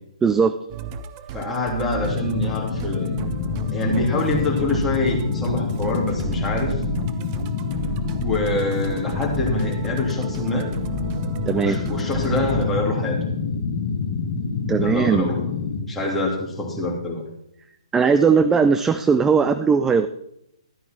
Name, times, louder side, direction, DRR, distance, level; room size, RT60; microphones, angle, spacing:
voice 1, 0.2-0.5 11.5-11.8 14.7-15.3 17.9-20.1, right 5 dB, 10° right, 10 dB, 0.4 m, -18 dB
Musical instrument, 0.7-12.6, right 6 dB, 30° right, 0.7 m, -33 dB
voice 2, 1.3-3.2 3.7-6.8 8.2-10.7 11.5-13.2 14.8-15.5 15.8-17.2, left 2 dB, 5° left, -3 dB, 3.0 m, -25 dB
sound 1, 2.0-15.8, left 5 dB, 55° left, 2.0 m, -27 dB
13.0 x 9.3 x 4.5 m, 0.78 s
figure-of-eight pair, 135°, 3 cm